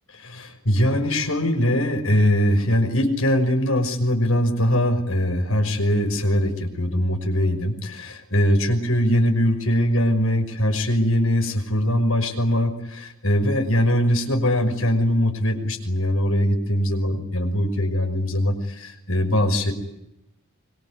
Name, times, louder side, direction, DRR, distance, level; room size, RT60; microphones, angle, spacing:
voice 1, 0.1-19.7, equal, 70° left, 6 dB, 5.8 m, -21 dB
26.0 x 23.0 x 9.5 m, 0.87 s
head